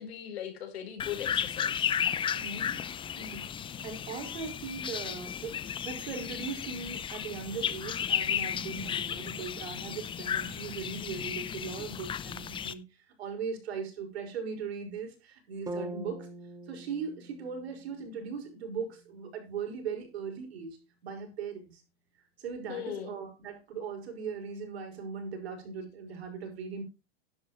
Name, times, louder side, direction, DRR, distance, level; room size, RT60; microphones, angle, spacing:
voice 1, 0.0-2.0 22.7-23.1, left 10 dB, 85° left, 4.5 m, -39 dB
sound 1, 1.0-12.7, left 8 dB, 15° left, 0.6 m, -34 dB
voice 2, 2.3-2.8 3.2-3.4 3.8-16.3 16.7-20.8 21.0-21.8 22.4-26.8, right 6 dB, 85° right, 5.5 m, -39 dB
sound 2, 15.7-19.7, right 1 dB, 10° right, 1.2 m, -44 dB
11.5 x 11.0 x 3.1 m
supercardioid pair, 130°, 31 cm